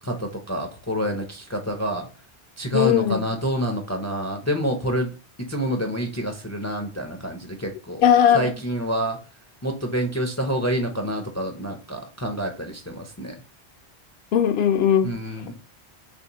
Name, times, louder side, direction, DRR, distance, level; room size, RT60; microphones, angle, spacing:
voice 1, 0.0-2.1 2.6-5.1 5.5-8.0 8.3-9.2 9.6-13.3 15.0-15.5, equal, 25° left, 0.4 m, -27 dB
voice 2, 2.7-3.2 8.0-8.6 14.3-15.1, left 9 dB, 70° left, 0.8 m, -18 dB
4.2 x 3.2 x 2.8 m
omnidirectional pair, 1.1 m